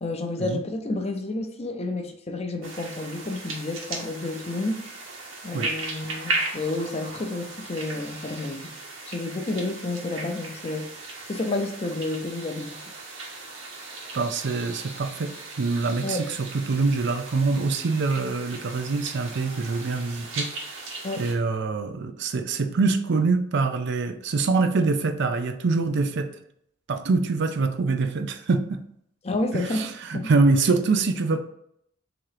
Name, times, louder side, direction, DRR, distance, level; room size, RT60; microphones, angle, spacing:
voice 1, 0.0-4.8 5.4-8.7 9.1-10.9 11.3-12.8 16.0-16.3 21.0-21.3 29.2-30.3, left 2 dB, 30° left, 5 dB, 0.5 m, -30 dB
sound 1, 2.6-21.3, right 2 dB, 90° right, 1.2 m, -37 dB
voice 2, 14.1-20.5 21.2-26.3 26.9-28.8 29.5-31.4, right 3 dB, 60° right, 8 dB, 0.5 m, -24 dB
3.7 x 3.0 x 4.8 m, 0.70 s
head